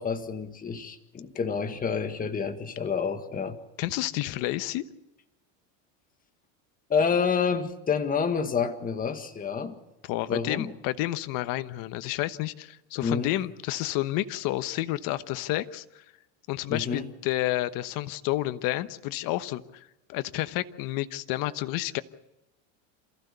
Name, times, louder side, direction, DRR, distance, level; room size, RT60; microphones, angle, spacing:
voice 1, 0.0-3.6 6.9-9.8 10.3-10.7 13.0-13.3 16.7-17.1, left 6 dB, 20° left, 7 dB, 1.8 m, -28 dB
voice 2, 3.8-4.8 10.0-16.0 16.5-22.0, left 16 dB, 55° left, 12 dB, 1.2 m, -30 dB
27.5 x 15.0 x 6.8 m, 0.95 s
supercardioid pair, 125°, 39 cm